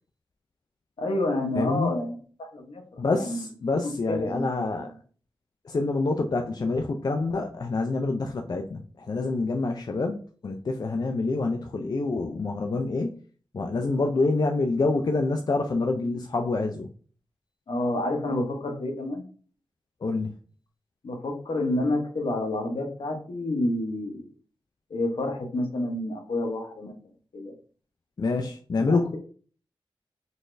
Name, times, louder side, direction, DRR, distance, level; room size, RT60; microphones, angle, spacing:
voice 1, 1.0-3.4 3.8-4.7 17.7-19.2 21.0-24.3 24.9-26.9 27.3-27.5 28.9-29.2, left 1 dB, 75° left, 2 dB, 0.9 m, -29 dB
voice 2, 1.6-1.9 3.0-4.9 5.6-13.2 13.5-16.9 20.0-20.3 28.2-29.2, left 3 dB, 45° left, 3 dB, 0.4 m, -27 dB
4.0 x 2.5 x 3.2 m, 0.42 s
wide cardioid pair, 90°, 9 cm